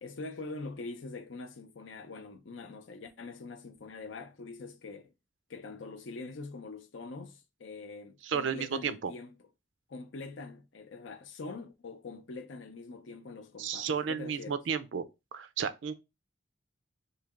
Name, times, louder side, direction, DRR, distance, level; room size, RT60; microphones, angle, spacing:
voice 1, 0.0-5.1 5.5-9.5 9.9-14.6, left 3 dB, 75° left, 0.6 m, -44 dB
voice 2, 8.2-9.1 13.6-15.0 15.3-16.0, right 6 dB, 75° right, 0.4 m, -33 dB
3.2 x 2.8 x 3.6 m
head